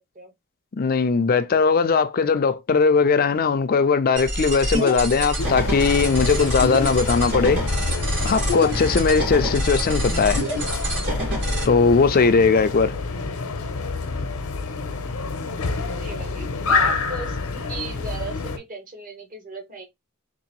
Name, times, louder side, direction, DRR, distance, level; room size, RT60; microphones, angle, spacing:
voice 1, 0.8-7.6 8.2-10.4 11.6-12.9, left 5 dB, 40° left, 0.4 m, -19 dB
sound 1, 4.2-11.6, equal, 55° right, 2.1 m, -26 dB
sound 2, 5.4-18.6, left 4 dB, 75° left, 0.7 m, -28 dB
voice 2, 16.0-17.4 17.7-19.9, right 3 dB, 40° right, 1.2 m, -36 dB
3.7 x 2.6 x 2.9 m
head